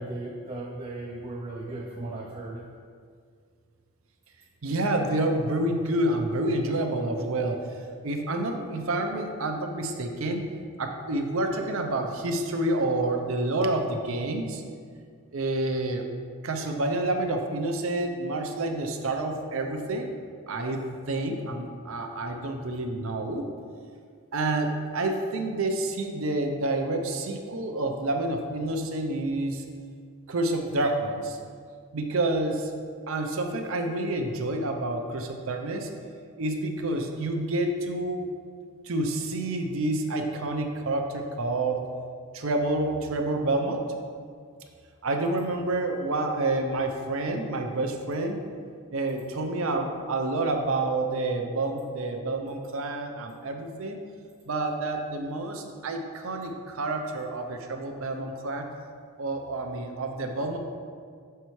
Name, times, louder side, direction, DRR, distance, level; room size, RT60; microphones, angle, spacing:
voice 1, 0.0-2.6, right 2 dB, 25° right, -1 dB, 0.4 m, -36 dB
voice 2, 4.6-7.6 8.0-10.5 10.8-14.6 15.3-16.1 16.4-20.1 20.5-23.4 24.3-29.6 30.3-31.4 31.9-32.7 33.1-35.9 36.4-38.2 38.8-41.9 42.3-43.8 45.0-48.4 48.9-54.0 54.5-58.7 59.2-60.6, right 2 dB, 65° right, 4 dB, 0.6 m, -28 dB
6.6 x 5.6 x 3.1 m, 2.1 s
head